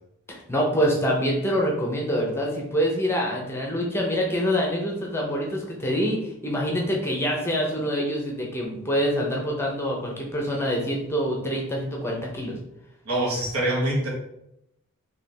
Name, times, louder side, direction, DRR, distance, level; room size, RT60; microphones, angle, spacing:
voice 1, 0.3-12.6, equal, 10° left, -1 dB, 0.6 m, -26 dB
voice 2, 13.0-14.1, right 1 dB, 80° right, -3 dB, 1.3 m, -24 dB
3.4 x 2.8 x 4.3 m, 0.82 s
head